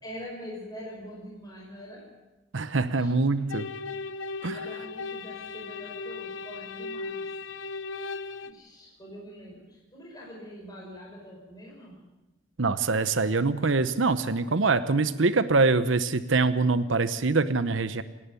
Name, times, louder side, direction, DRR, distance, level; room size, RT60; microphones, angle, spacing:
voice 1, 0.0-2.1 2.8-3.1 4.5-7.3 8.4-12.0, equal, 20° left, -3 dB, 5.3 m, -44 dB
voice 2, 2.5-3.7 4.4-4.6 12.6-18.0, right 3 dB, 80° right, 12 dB, 0.9 m, -24 dB
sound 1, 3.5-8.5, left 4 dB, 80° left, 0.8 m, -37 dB
29.0 x 11.0 x 8.3 m, 1.1 s
head